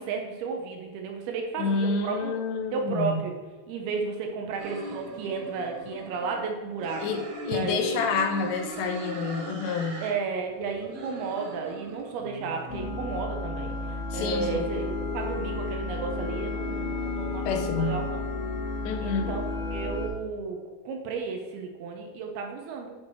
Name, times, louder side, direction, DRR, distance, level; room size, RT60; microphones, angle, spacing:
voice 1, 0.0-2.3 2.7-3.3 3.7-7.0 7.5-8.0 10.0-18.2 19.0-19.5 19.7-20.6 20.9-22.9, right 5 dB, 75° right, 2 dB, 2.5 m, -33 dB
voice 2, 1.6-3.2 7.0-10.1 14.1-14.6 17.5-18.1 18.8-19.3, left 4 dB, 85° left, 5 dB, 3.1 m, -28 dB
sound 1, 4.6-6.4 6.8-10.1 10.4-13.0, right 2 dB, 60° right, 2.6 m, -40 dB
sound 2, 12.7-20.1, left 3 dB, 35° left, 1.3 m, -32 dB
8.8 x 4.6 x 4.4 m, 1.3 s
omnidirectional pair, 4.9 m